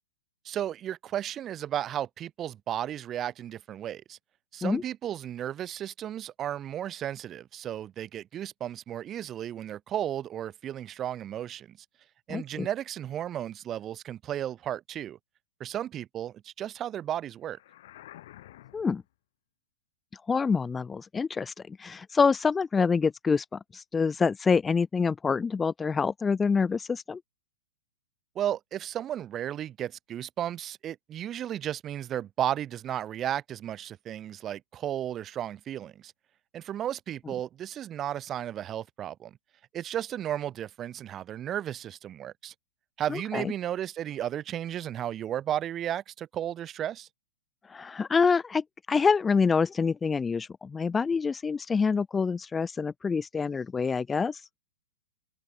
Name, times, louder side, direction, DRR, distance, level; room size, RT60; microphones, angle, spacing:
voice 1, 0.4-4.2 4.5-11.8 12.3-15.2 15.6-17.6 28.3-36.1 36.5-39.4 39.7-42.5 43.0-47.1, right 11 dB, 25° right, 0.8 m, -34 dB
voice 2, 12.3-12.7 18.7-19.0 20.1-27.2 43.1-43.5 47.6-54.4, left 5 dB, 10° left, 0.4 m, -26 dB
sound 1, 17.5-19.1, left 14 dB, 60° left, 4.8 m, -50 dB
hypercardioid pair, 140°, 0 cm